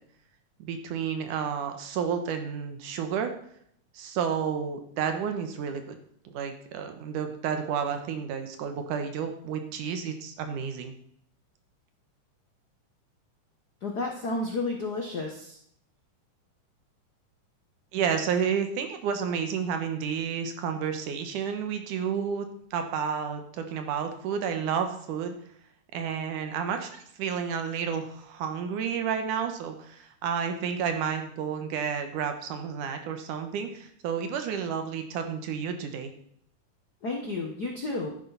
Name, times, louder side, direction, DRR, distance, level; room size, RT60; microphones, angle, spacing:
voice 1, 0.6-3.3 3.9-6.0 6.2-10.9 17.9-25.4 25.9-36.1, right 7 dB, 80° right, 7 dB, 2.7 m, -31 dB
voice 2, 13.8-15.6 37.0-38.1, left 2 dB, 60° left, 1 dB, 1.0 m, -31 dB
11.5 x 10.0 x 4.0 m, 0.66 s
omnidirectional pair, 3.6 m